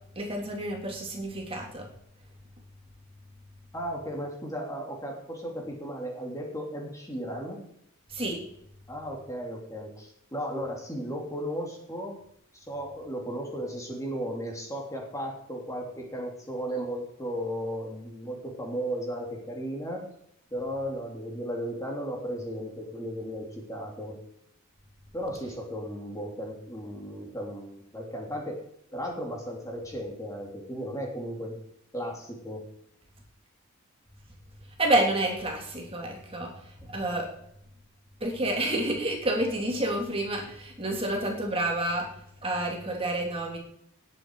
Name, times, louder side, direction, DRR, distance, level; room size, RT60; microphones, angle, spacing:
voice 1, 0.1-1.9 8.1-8.4 34.8-36.5 36.9-37.3 38.2-42.1 42.4-43.6, right 1 dB, 25° right, 0 dB, 3.1 m, -29 dB
voice 2, 3.7-7.6 8.9-12.2 12.5-20.1 20.5-24.2 25.1-28.6 28.9-31.6 31.9-32.6, equal, 15° left, -1 dB, 3.4 m, -35 dB
19.5 x 8.9 x 5.0 m, 0.71 s
head